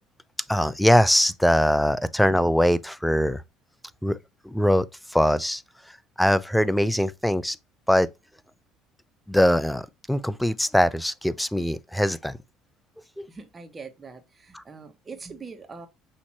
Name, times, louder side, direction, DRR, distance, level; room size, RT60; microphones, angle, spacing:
voice 1, 0.5-3.4 4.0-4.2 4.4-5.6 6.2-7.6 7.9-8.1 9.3-12.4 13.2-13.3, equal, 5° left, 0.4 m, -22 dB
voice 2, 13.3-15.9, right 4 dB, 25° right, 1.2 m, -42 dB
6.2 x 2.9 x 2.8 m
supercardioid pair, 85°, 0 cm